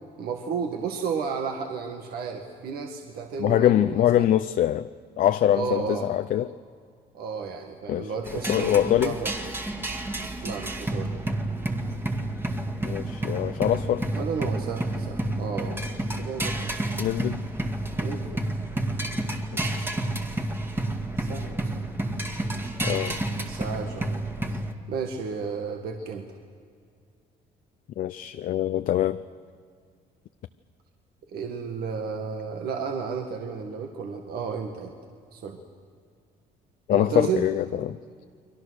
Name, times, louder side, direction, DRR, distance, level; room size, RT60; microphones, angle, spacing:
voice 1, 0.2-4.3 5.5-6.1 7.1-9.3 10.4-11.1 14.1-15.8 16.2-16.7 18.0-18.5 21.2-21.8 23.4-24.2 24.9-26.3 31.3-34.9 35.3-35.6 36.9-37.5, right 6 dB, 65° right, 3 dB, 2.0 m, -32 dB
voice 2, 3.4-4.9 5.2-6.5 7.9-9.2 12.8-14.1 17.0-17.4 22.8-23.2 28.0-29.2 36.9-38.0, left 11 dB, 55° left, 10 dB, 0.6 m, -24 dB
sound 1, 8.3-24.7, right 1 dB, 15° right, 2.0 m, -30 dB
29.5 x 23.0 x 6.5 m, 2.2 s
cardioid pair, 110°, 17 cm